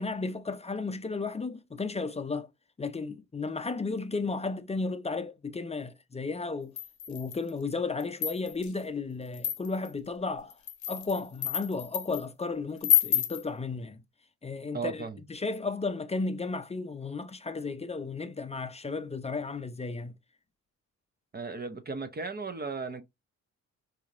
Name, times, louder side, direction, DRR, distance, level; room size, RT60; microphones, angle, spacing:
voice 1, 0.0-2.5 2.8-6.8 7.1-10.6 10.9-14.0 14.4-20.1, left 3 dB, 20° left, 0.5 m, -34 dB
sound 1, 6.8-7.5 8.0-8.7 9.3-9.9 10.5-12.2 12.8-13.4, left 10 dB, 65° left, 0.8 m, -29 dB
voice 2, 14.7-15.2 21.3-23.0, right 4 dB, 30° right, 0.6 m, -36 dB
3.8 x 2.9 x 2.5 m
cardioid pair, 70°, 32 cm